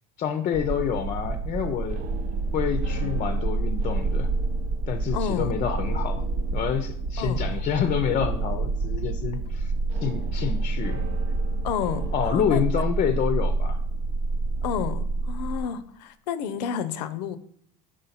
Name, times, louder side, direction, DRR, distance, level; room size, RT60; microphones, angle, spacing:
voice 1, 0.2-2.0 2.5-4.3 4.9-6.3 6.5-9.7 10.0-11.0 12.1-13.8, left 8 dB, 40° left, 8 dB, 0.5 m, -27 dB
sound 1, 0.5-15.6, right 3 dB, 70° right, 0.8 m, -28 dB
voice 2, 5.1-5.5 7.2-7.6 11.6-12.8 14.6-17.4, left 8 dB, 90° left, 13 dB, 0.5 m, -31 dB
5.0 x 4.0 x 5.6 m, 0.66 s
supercardioid pair, 100°, 21 cm